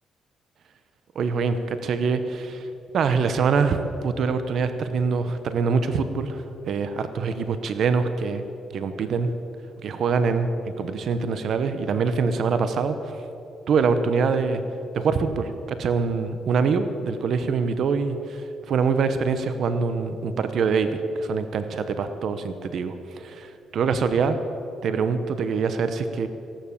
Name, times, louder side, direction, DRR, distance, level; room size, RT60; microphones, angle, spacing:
voice 1, 1.1-2.7 2.9-8.4 8.7-9.3 9.8-10.5 10.8-13.1 13.7-14.6 14.9-24.4 24.8-26.3, right 5 dB, 65° right, 10 dB, 1.0 m, -24 dB
16.5 x 11.5 x 7.2 m, 2.9 s
cardioid pair, 90°, 0 cm